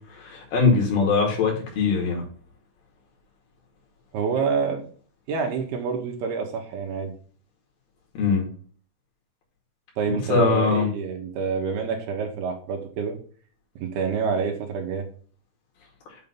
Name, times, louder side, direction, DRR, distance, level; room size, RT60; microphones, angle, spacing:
voice 1, 0.1-2.2 8.2-8.5 10.3-10.9, left 4 dB, 55° left, -1 dB, 3.6 m, -21 dB
voice 2, 4.1-4.8 5.3-7.1 10.0-13.2 13.8-15.1, right 5 dB, 70° right, 2 dB, 2.7 m, -27 dB
8.1 x 3.7 x 5.3 m, 0.44 s
omnidirectional pair, 5.6 m